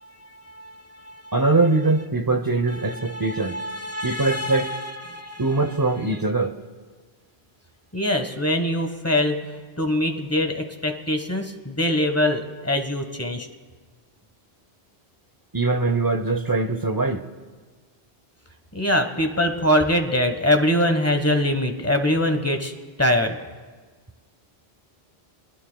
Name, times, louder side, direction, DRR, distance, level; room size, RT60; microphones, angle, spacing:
voice 1, 0.5-1.4 2.9-5.4 7.9-9.4 9.8-13.5 18.7-22.7 23.0-23.4, left 1 dB, 15° left, 6 dB, 1.2 m, -23 dB
voice 2, 1.3-3.6 4.0-4.7 5.4-6.6 15.5-17.2, right 3 dB, 25° right, 9 dB, 0.7 m, -22 dB
29.0 x 20.5 x 2.3 m, 1.4 s
omnidirectional pair, 1.1 m